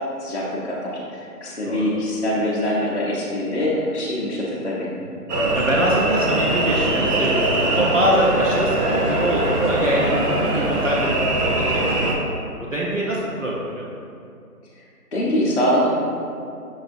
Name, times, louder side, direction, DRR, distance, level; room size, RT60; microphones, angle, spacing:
voice 1, 0.0-4.9 14.7-14.8 15.1-16.0, equal, 50° left, -7 dB, 0.5 m, -24 dB
sound 1, 5.3-12.1, right 1 dB, 85° right, 0.8 m, -21 dB
voice 2, 5.5-12.2 12.7-13.9, equal, 55° right, -5 dB, 0.5 m, -24 dB
5.3 x 2.6 x 2.5 m, 2.5 s
figure-of-eight pair, 180°, 46 cm